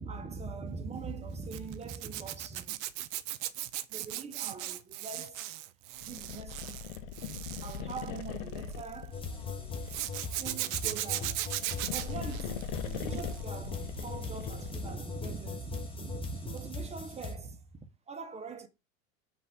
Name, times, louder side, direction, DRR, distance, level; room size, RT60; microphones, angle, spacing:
voice 1, 0.0-2.8 3.9-5.6 6.0-6.9 7.6-9.2 10.4-11.4 11.9-18.7, right 4 dB, 15° right, 0.7 m, -42 dB
Zipper (clothing), 1.5-8.9 9.9-13.5 13.9-14.2 16.6-16.7 17.0-17.1, right 15 dB, 60° right, 0.6 m, -37 dB
sound 1, 6.0-10.5 11.4-15.1, left 7 dB, 70° left, 0.7 m, -41 dB
sound 2, 9.1-17.3, left 4 dB, 15° left, 0.8 m, -40 dB
5.5 x 2.6 x 3.4 m
hypercardioid pair, 100°, 40 cm